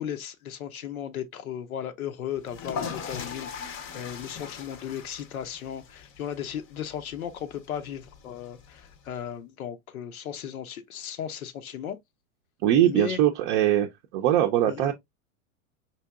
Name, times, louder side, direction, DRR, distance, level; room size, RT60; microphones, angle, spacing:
voice 1, 0.0-12.0 12.8-13.2 14.7-14.8, left 9 dB, 90° left, 0.8 m, -36 dB
sound 1, 2.4-9.2, left 6 dB, 30° left, 0.6 m, -40 dB
voice 2, 12.6-13.9 14.1-14.9, right 11 dB, 45° right, 0.5 m, -21 dB
4.4 x 2.7 x 2.3 m
hypercardioid pair, 115°, 41 cm